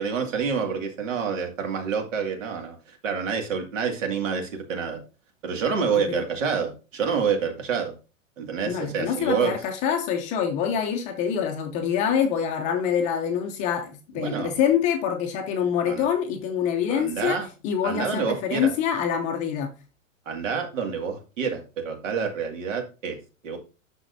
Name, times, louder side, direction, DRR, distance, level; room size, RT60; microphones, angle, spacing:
voice 1, 0.0-5.0 5.4-7.9 8.4-9.6 14.2-14.5 15.9-16.1 16.9-17.5 17.8-18.7 20.3-23.2 23.4-23.6, right 6 dB, 65° right, 2.3 m, -28 dB
voice 2, 5.9-6.2 8.7-19.7, left 8 dB, 20° left, 0.6 m, -26 dB
9.3 x 6.2 x 2.7 m
hypercardioid pair, 160°, 41 cm